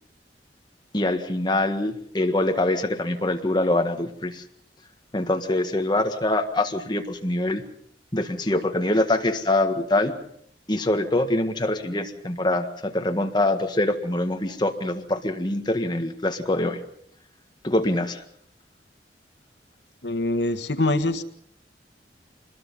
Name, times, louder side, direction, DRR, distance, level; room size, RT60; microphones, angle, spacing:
voice 1, 0.9-4.4 5.1-7.6 8.1-10.1 10.7-16.8 17.6-18.2, left 1 dB, 25° left, 5 dB, 1.7 m, -24 dB
voice 2, 20.0-21.2, left 2 dB, 80° left, 9 dB, 1.6 m, -24 dB
26.0 x 21.0 x 5.5 m, 0.68 s
head